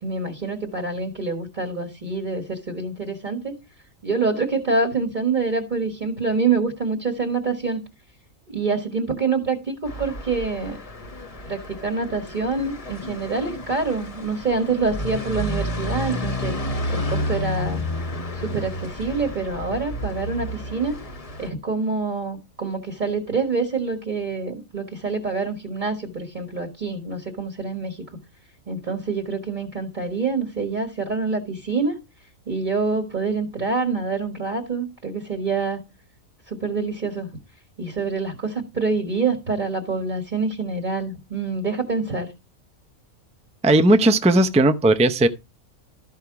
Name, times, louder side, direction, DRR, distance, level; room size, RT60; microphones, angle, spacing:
voice 1, 0.0-3.5 4.0-7.8 8.5-10.8 11.4-16.6 16.9-17.8 18.3-21.0 21.4-28.0 28.7-32.0 32.5-35.8 36.5-37.3 37.8-42.3, right 4 dB, 35° right, 1.6 m, -26 dB
sound 1, 9.9-21.5, left 1 dB, 25° left, 1.1 m, -31 dB
voice 2, 43.6-45.3, right 1 dB, 10° right, 0.3 m, -16 dB
13.0 x 5.7 x 4.7 m
omnidirectional pair, 1.5 m